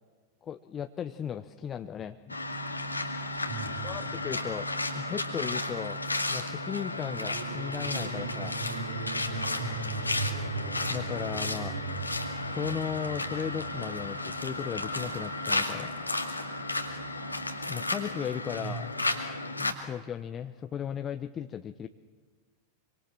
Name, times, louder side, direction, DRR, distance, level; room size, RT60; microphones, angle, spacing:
voice 1, 0.4-2.4 3.8-4.7 4.9-6.0 6.3-8.6 10.9-11.7 12.4-15.9 17.7-18.9 19.6-21.9, left 8 dB, 25° left, 9 dB, 0.8 m, -36 dB
sound 1, 2.3-19.7, left 2 dB, 85° left, 2.2 m, -33 dB
sound 2, 2.9-5.1 6.8-19.0, right 3 dB, 65° right, 2.4 m, -41 dB
voice 2, 3.5-4.1 9.6-10.5 18.6-19.1, right 5 dB, 45° right, 3 dB, 5.8 m, -40 dB
26.0 x 25.0 x 7.4 m, 1.5 s
figure-of-eight pair, 90°, 0 cm